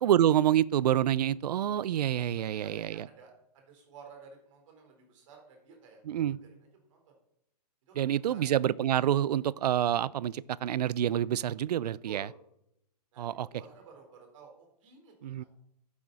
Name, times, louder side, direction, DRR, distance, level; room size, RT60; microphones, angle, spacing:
voice 1, 0.0-3.1 6.0-6.4 8.0-12.3 13.2-13.5 15.2-15.4, right 11 dB, 70° right, 23 dB, 0.5 m, -27 dB
voice 2, 2.4-6.5 6.9-7.1 7.9-8.5 11.8-12.3 13.1-15.5, right 5 dB, 50° right, 2 dB, 4.0 m, -53 dB
11.5 x 9.8 x 4.1 m, 0.78 s
hypercardioid pair, 155°, 21 cm